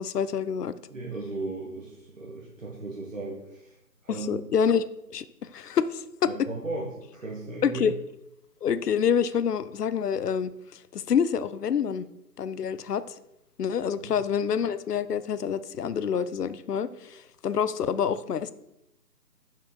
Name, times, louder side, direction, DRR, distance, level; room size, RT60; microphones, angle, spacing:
voice 1, 0.0-0.7 4.1-4.8 5.1-6.3 7.6-7.9 8.6-12.1 12.4-13.1 13.6-18.5, left 7 dB, 70° left, 14 dB, 0.6 m, -27 dB
voice 2, 0.9-3.8 4.0-4.3 6.2-6.8 7.1-7.8 14.0-14.2, right 2 dB, 50° right, -4 dB, 1.6 m, -36 dB
7.0 x 6.1 x 4.6 m, 0.84 s
hypercardioid pair, 180°, 50 cm